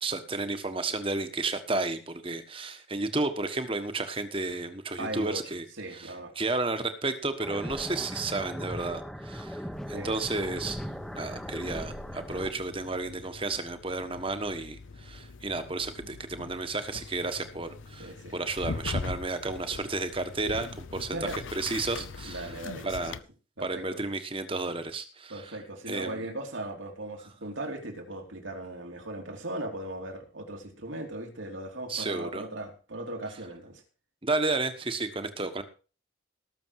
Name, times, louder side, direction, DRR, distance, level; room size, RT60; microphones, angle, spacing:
voice 1, 0.0-5.6 5.9-21.2 21.5-22.5 22.8-23.2 23.6-25.6 25.9-26.2 31.9-32.4 34.2-35.6, right 3 dB, 25° right, 9 dB, 1.3 m, -32 dB
voice 2, 5.0-5.5 5.8-6.4 9.9-10.2 16.0-16.1 18.0-18.3 21.1-21.5 22.3-22.9 23.6-24.0 25.3-33.8, right 1 dB, 80° right, 2 dB, 3.1 m, -38 dB
sound 1, 7.4-12.5, equal, ahead, 0.9 m, -38 dB
sound 2, 9.7-23.2, left 4 dB, 85° left, 0.6 m, -42 dB
18.5 x 6.9 x 4.8 m, 0.35 s
head